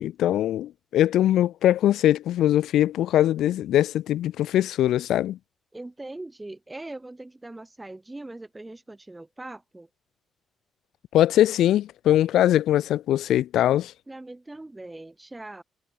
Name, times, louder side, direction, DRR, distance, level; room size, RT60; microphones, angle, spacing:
voice 1, 0.0-5.4 11.1-13.9, left 12 dB, 80° left, 0.4 m, -21 dB
voice 2, 5.7-9.9 14.1-15.6, right 2 dB, 15° right, 2.8 m, -41 dB
cardioid pair, 90°, 0 cm